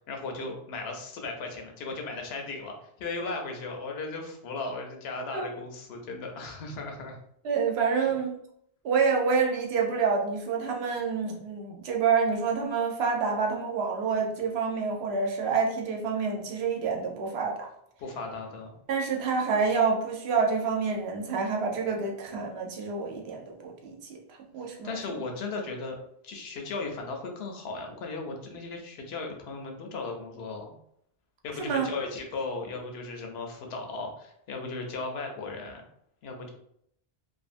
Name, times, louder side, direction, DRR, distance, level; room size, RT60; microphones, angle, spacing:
voice 1, 0.1-7.2 18.0-18.7 24.8-26.0 26.2-30.7 31.4-35.8 36.2-36.5, left 3 dB, 80° left, 2 dB, 0.8 m, -36 dB
voice 2, 7.4-8.4 8.8-17.7 18.9-24.2 24.5-25.0 31.6-31.9, right 5 dB, 80° right, 1 dB, 0.9 m, -27 dB
2.6 x 2.3 x 2.5 m, 0.72 s
omnidirectional pair, 1.1 m